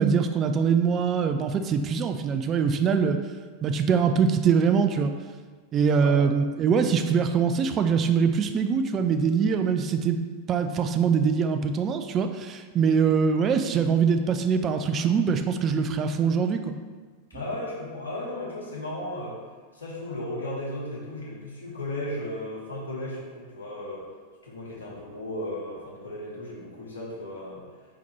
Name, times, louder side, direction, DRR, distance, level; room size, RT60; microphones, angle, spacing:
voice 1, 0.0-3.2 3.6-5.1 5.7-10.2 10.5-16.7, right 6 dB, 30° right, 7 dB, 0.3 m, -23 dB
voice 2, 17.3-19.4 19.7-24.0 24.4-27.6, left 1 dB, 70° left, -5 dB, 1.2 m, -35 dB
4.3 x 4.0 x 2.9 m, 1.5 s
figure-of-eight pair, 90°, 0 cm